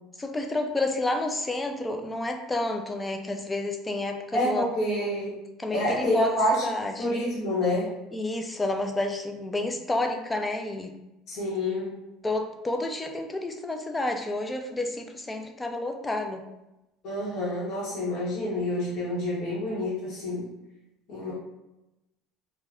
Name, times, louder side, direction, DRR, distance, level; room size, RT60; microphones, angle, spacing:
voice 1, 0.2-5.3 5.6-6.4 6.6-7.1 8.1-10.9 12.2-16.4, left 2 dB, 15° left, 4 dB, 0.3 m, -30 dB
voice 2, 4.3-5.3 5.7-6.7 7.0-7.9 11.3-12.0 17.0-20.5 21.1-21.3, left 1 dB, 55° left, -8 dB, 0.9 m, -28 dB
2.3 x 2.1 x 3.4 m, 0.93 s
cardioid pair, 125°, 0 cm